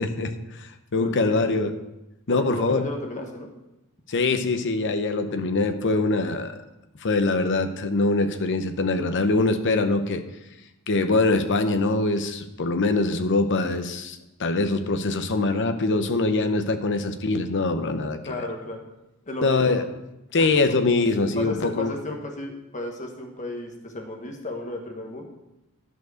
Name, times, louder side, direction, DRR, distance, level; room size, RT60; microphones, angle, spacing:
voice 1, 0.0-1.7 2.3-2.8 4.1-6.6 7.0-10.2 10.9-18.3 19.4-19.8 20.3-21.9, left 3 dB, 55° left, 9 dB, 0.8 m, -23 dB
voice 2, 1.0-1.5 2.3-3.5 18.3-18.9 19.2-19.8 20.4-20.7 21.1-25.3, left 2 dB, 35° left, 2 dB, 1.4 m, -34 dB
11.0 x 4.7 x 6.4 m, 0.94 s
head